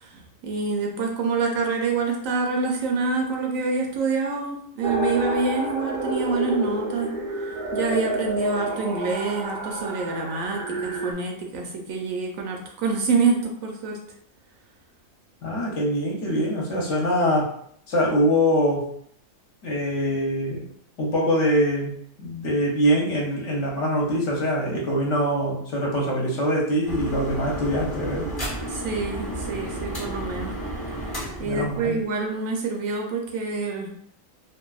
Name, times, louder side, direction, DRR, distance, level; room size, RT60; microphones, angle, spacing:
voice 1, 0.0-7.2 7.7-14.0 28.7-30.6 31.4-33.9, right 4 dB, 75° right, 2 dB, 1.0 m, -26 dB
sound 1, 4.8-11.1, right 1 dB, 55° right, 0.6 m, -29 dB
voice 2, 15.4-17.5 17.9-18.9 19.6-20.6 21.0-28.3 31.4-32.0, equal, 65° left, -2 dB, 0.9 m, -23 dB
sound 2, 26.8-32.3, right 1 dB, 25° left, 0.6 m, -32 dB
2.6 x 2.3 x 2.3 m, 0.65 s
omnidirectional pair, 1.4 m